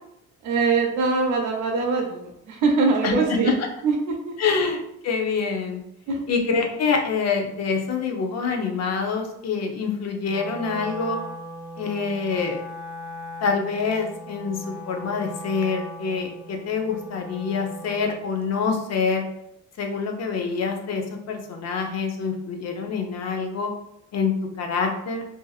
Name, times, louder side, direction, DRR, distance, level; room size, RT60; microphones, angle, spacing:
voice 1, 0.4-3.5 3.8-4.3 6.1-6.2, right 4 dB, 80° right, 1 dB, 0.6 m, -23 dB
voice 2, 4.4-5.8 6.3-11.2 11.8-12.6 13.4-19.2 19.8-23.7 24.1-25.3, left 5 dB, 60° left, 3 dB, 0.6 m, -26 dB
Wind instrument woodwind instrument, 10.3-18.3, equal, 10° right, 0.3 m, -39 dB
2.7 x 2.5 x 2.3 m, 0.78 s
cardioid pair, 90°, 30 cm